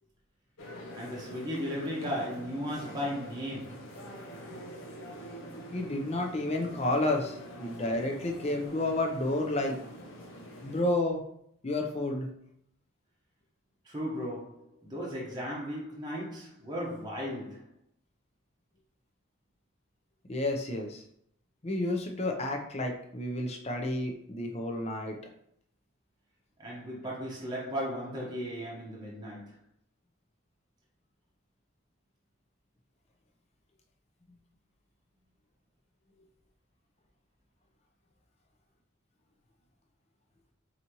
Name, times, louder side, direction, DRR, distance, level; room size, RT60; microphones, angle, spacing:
sound 1, 0.6-10.8, equal, 75° left, 0.6 m, -45 dB
voice 1, 0.9-3.8 13.9-17.7 26.6-29.5, equal, 20° right, 0.9 m, -36 dB
voice 2, 5.7-9.8 10.6-11.2 11.6-12.3 20.3-21.0 21.6-25.2, left 1 dB, 30° left, 0.6 m, -31 dB
4.9 x 2.8 x 2.9 m
head